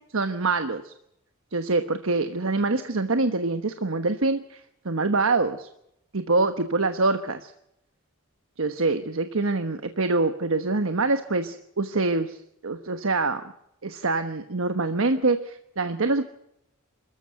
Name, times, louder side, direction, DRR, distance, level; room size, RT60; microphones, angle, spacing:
voice 1, 0.1-0.9 1.5-5.7 6.1-7.5 8.6-12.4 12.6-13.4 13.8-16.2, right 3 dB, 70° right, 8 dB, 1.2 m, -25 dB
26.0 x 14.5 x 8.1 m, 0.78 s
head